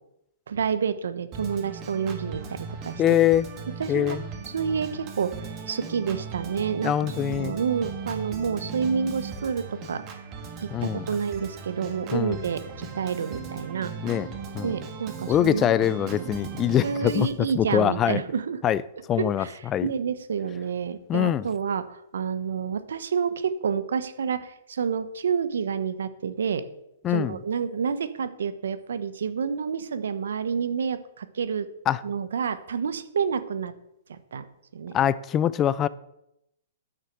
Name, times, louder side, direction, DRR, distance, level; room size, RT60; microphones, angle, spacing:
voice 1, 0.5-3.0 3.8-4.2 4.5-5.4 5.7-6.9 7.2-10.0 10.6-14.2 14.6-15.7 16.1-16.2 16.8-18.6 19.2-21.8 22.1-26.6 27.1-31.7 32.0-33.7 34.1-34.4 34.7-34.9, right 6 dB, 80° right, 1.0 m, -29 dB
Organ, 1.3-17.3, right 5 dB, 30° right, 1.9 m, -38 dB
voice 2, 3.0-3.5 3.9-4.2 6.8-7.6 10.7-11.1 12.1-12.4 14.0-14.3 14.5-14.8 15.3-18.2 18.6-18.8 19.1-19.9 21.1-21.5 27.0-27.4 31.9-32.0 34.9-35.9, left 11 dB, 25° left, 0.4 m, -23 dB
9.5 x 6.4 x 6.6 m
hypercardioid pair, 140°, 0 cm